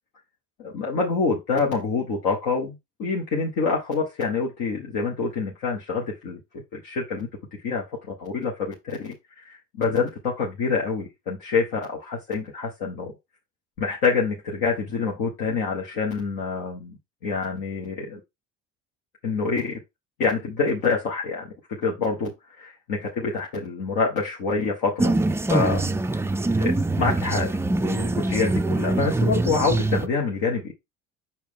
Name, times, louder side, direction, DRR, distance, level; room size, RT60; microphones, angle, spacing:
voice 1, 0.6-7.3 7.6-9.1 9.4-13.1 13.8-18.2 19.2-19.7 20.2-25.1 25.5-26.2 26.6-27.6 27.8-30.7, left 4 dB, 70° left, -3 dB, 1.7 m, -26 dB
Quiet Chat, 25.0-30.1, right 2 dB, 10° right, 0.3 m, -24 dB
5.7 x 4.5 x 3.7 m, 0.21 s
hypercardioid pair, 60°, 36 cm